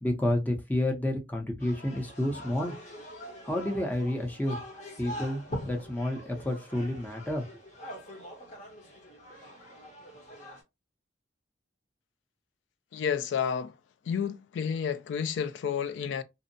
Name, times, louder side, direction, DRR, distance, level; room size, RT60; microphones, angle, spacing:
voice 1, 0.0-2.7 3.4-4.6 5.0-7.4, left 1 dB, 10° left, 0.6 m, -30 dB
sound 1, 1.6-10.6, equal, 40° left, 0.8 m, -43 dB
voice 2, 12.9-13.8 14.0-16.2, left 7 dB, 90° left, 0.3 m, -30 dB
2.6 x 2.0 x 2.5 m
head